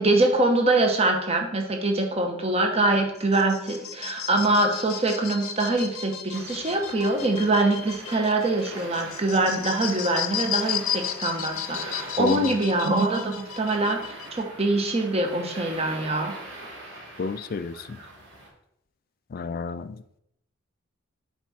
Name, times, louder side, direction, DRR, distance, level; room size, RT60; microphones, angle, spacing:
voice 1, 0.0-16.3, right 2 dB, 30° right, 3 dB, 0.9 m, -24 dB
sound 1, 3.2-14.4, left 10 dB, 85° left, 0.7 m, -34 dB
sound 2, 6.3-18.5, right 1 dB, 65° right, 2.4 m, -43 dB
voice 2, 12.2-12.5 17.2-18.0 19.3-20.0, left 4 dB, 45° left, 13 dB, 0.3 m, -29 dB
7.5 x 4.7 x 4.2 m, 0.78 s
head